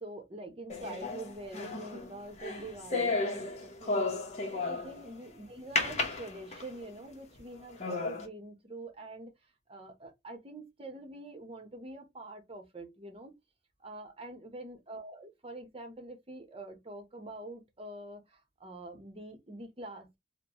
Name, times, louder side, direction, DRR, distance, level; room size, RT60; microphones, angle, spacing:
voice 1, 0.0-4.2 4.5-9.3 9.7-13.3 13.8-20.2, right 2 dB, 30° right, 0.9 m, -45 dB
sound 1, 0.7-5.1 5.8-6.9 7.4-7.5 7.8-8.3, left 3 dB, 35° left, 1.0 m, -33 dB
3.9 x 2.2 x 2.9 m
head